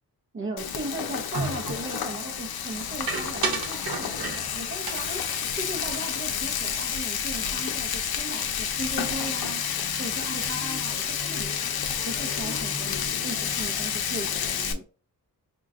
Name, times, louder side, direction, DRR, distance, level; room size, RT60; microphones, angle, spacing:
voice 1, 0.3-5.2 5.5-9.6 10.0-11.7 12.0-14.8, right 2 dB, 35° right, 0 dB, 0.7 m, -37 dB
Frying (food), 0.6-14.7, left 8 dB, 75° left, 0.6 m, -30 dB
sound 1, 1.3-1.9 3.1-4.6 4.9-6.6 6.9-7.0 7.3-7.8, right 3 dB, 70° right, 0.9 m, -33 dB
sound 2, 1.9-14.6, left 2 dB, 25° left, 0.4 m, -45 dB
3.7 x 2.3 x 3.6 m, 0.35 s
wide cardioid pair, 90°, 37 cm